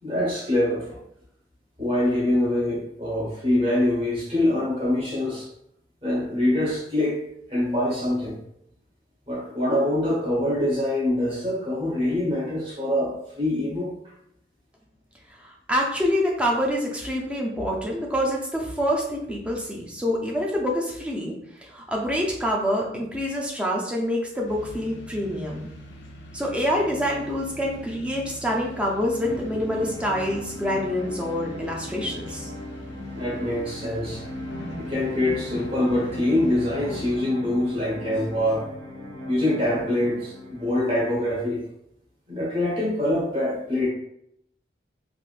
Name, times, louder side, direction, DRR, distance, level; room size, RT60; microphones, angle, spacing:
voice 1, 0.0-1.0 1.8-5.5 6.0-7.2 7.5-8.4 9.3-13.9 33.1-34.2 34.8-38.7 39.3-41.6 42.3-43.9, left 1 dB, 30° right, -5 dB, 1.1 m, -24 dB
voice 2, 15.4-21.3 21.6-25.7 26.3-32.5, equal, 5° right, -2 dB, 0.5 m, -26 dB
sound 1, 24.5-37.2, equal, 70° left, 0.5 m, -42 dB
sound 2, 29.2-41.1, left 1 dB, 65° right, 0.8 m, -38 dB
3.5 x 2.5 x 2.4 m, 0.73 s
head